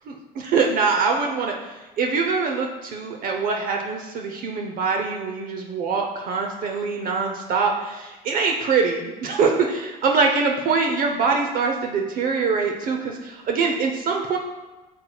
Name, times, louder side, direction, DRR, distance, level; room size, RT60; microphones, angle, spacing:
voice 1, 0.1-14.4, right 4 dB, 50° right, 2 dB, 0.7 m, -24 dB
8.5 x 6.5 x 2.3 m, 1.2 s
cardioid pair, 135°, 19 cm